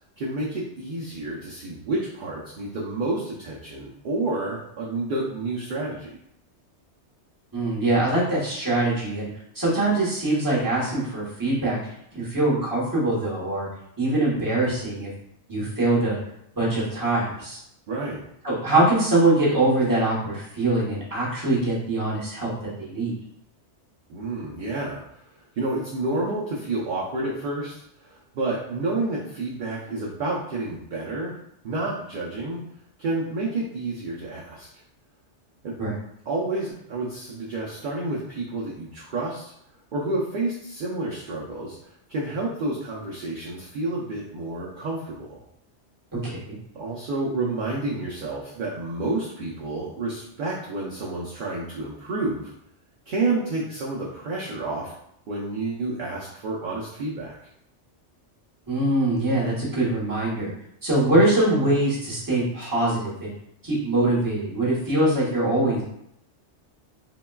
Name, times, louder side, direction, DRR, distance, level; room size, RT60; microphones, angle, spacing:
voice 1, 0.2-6.2 17.9-18.2 24.1-25.0 25.6-27.7 28.0-31.4 31.6-32.6 33.0-34.7 35.6-35.7 36.3-39.5 39.9-45.4 46.7-52.5 53.1-54.9 55.3-57.3 62.6-62.7, right 2 dB, 60° right, -5 dB, 0.6 m, -29 dB
voice 2, 7.5-9.3 9.5-11.8 12.1-13.7 14.0-15.1 15.5-16.2 16.6-17.6 18.4-22.5 22.8-23.1 35.8-35.9 46.1-46.5 58.7-60.5 60.8-63.3 63.6-65.8, right 2 dB, 20° right, -6 dB, 0.9 m, -23 dB
3.7 x 2.2 x 2.2 m, 0.75 s
omnidirectional pair, 1.2 m